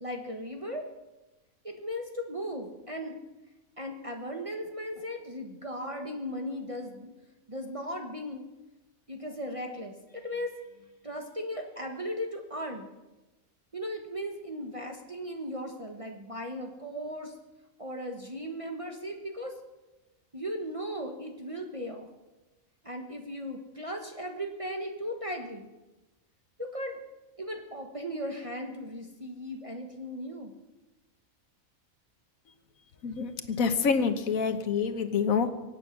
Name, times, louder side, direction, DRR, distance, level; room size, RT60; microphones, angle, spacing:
voice 1, 0.0-0.9 1.6-3.2 3.8-7.1 7.5-8.5 9.1-12.9 13.7-17.3 17.8-19.5 20.3-22.1 22.8-25.7 26.6-27.0 27.4-30.5, equal, 25° right, 2 dB, 1.3 m, -37 dB
voice 2, 33.0-35.5, left 5 dB, 80° left, 9 dB, 1.5 m, -27 dB
24.0 x 8.6 x 6.1 m, 1.1 s
omnidirectional pair, 1.4 m